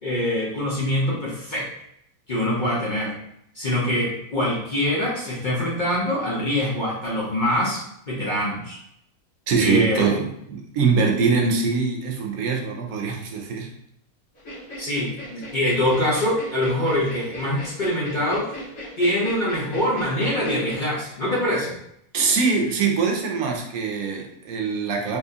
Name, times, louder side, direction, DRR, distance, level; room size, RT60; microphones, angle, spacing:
voice 1, 0.0-1.7 2.3-3.1 3.5-8.8 9.6-10.1 14.8-18.5 19.0-21.8, left 1 dB, 40° left, -6 dB, 0.8 m, -24 dB
voice 2, 9.5-13.7 22.1-25.2, right 4 dB, 75° right, 2 dB, 1.0 m, -23 dB
sound 1, 14.4-20.8, equal, 75° left, 1.9 m, -38 dB
3.5 x 3.0 x 2.7 m, 0.74 s
omnidirectional pair, 1.6 m